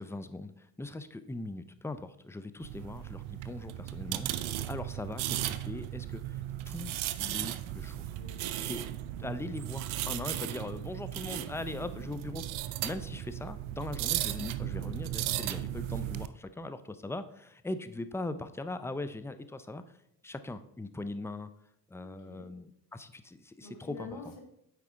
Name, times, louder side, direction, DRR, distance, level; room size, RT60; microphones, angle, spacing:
voice 1, 0.0-6.4 6.7-6.9 7.2-8.1 8.6-8.8 9.2-12.4 12.8-19.8 20.2-21.5 21.9-24.1, left 2 dB, 5° left, 11 dB, 0.5 m, -40 dB
sound 1, 2.6-16.3, right 13 dB, 75° right, 0.6 m, -36 dB
voice 2, 8.2-8.5 22.0-22.5 23.6-24.4, left 4 dB, 80° left, 1 dB, 1.7 m, -47 dB
7.8 x 4.8 x 3.7 m, 0.76 s
hypercardioid pair, 40°, 48 cm